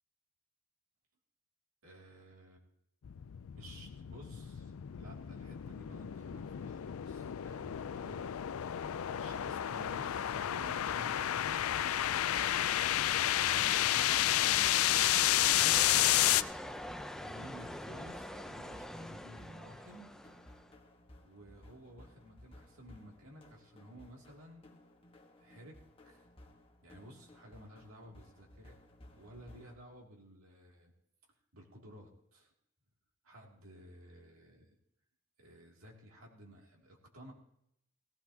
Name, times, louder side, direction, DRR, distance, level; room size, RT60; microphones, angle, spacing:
voice 1, 1.8-2.6 3.6-8.3 9.1-11.8 13.4-16.4 17.1-20.1 21.2-24.6 25.4-25.8 26.0-26.2 26.8-28.8 29.2-30.9 31.5-32.5 33.2-34.7 35.4-37.3, equal, 75° right, -1 dB, 2.6 m, -54 dB
sound 1, 3.0-16.4, left 12 dB, 75° left, 0.4 m, -31 dB
sound 2, 10.3-29.8, left 1 dB, 25° left, 1.3 m, -59 dB
sound 3, 15.6-20.7, equal, ahead, 0.5 m, -45 dB
17.5 x 15.5 x 2.8 m, 0.75 s
head